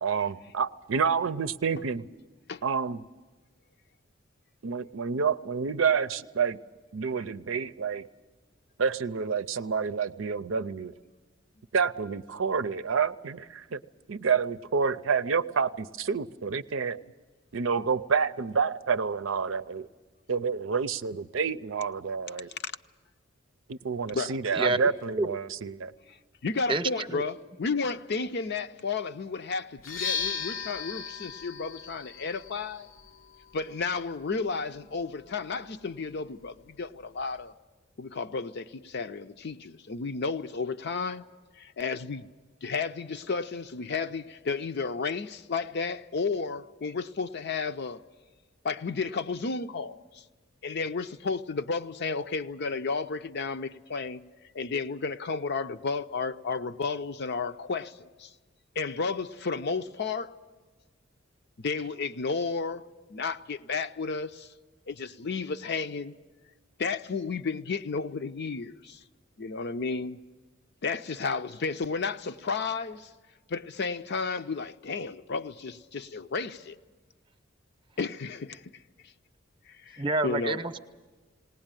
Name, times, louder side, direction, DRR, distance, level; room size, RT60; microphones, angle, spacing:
voice 1, 0.0-2.1 2.6-3.0 4.6-6.6 6.9-8.0 8.8-10.9 11.7-13.8 14.1-17.0 17.5-19.9 20.3-22.5 23.7-25.9, right 5 dB, 85° right, 0.6 m, -28 dB
voice 2, 26.4-32.9 33.5-37.5 38.0-41.3 41.6-42.3 42.6-48.0 48.6-50.2 50.6-54.2 54.5-57.9 58.2-58.3 58.8-60.3 61.6-62.8 63.1-64.5 64.9-66.1 66.8-69.0 69.4-70.2 70.8-73.1 73.5-76.8 78.0-78.7 79.7-80.6, left 4 dB, 60° left, 0.6 m, -32 dB
sound 1, 29.8-37.5, left 6 dB, 85° left, 0.8 m, -39 dB
voice 3, 80.0-80.8, right 2 dB, 25° right, 0.8 m, -27 dB
19.5 x 18.5 x 9.0 m
head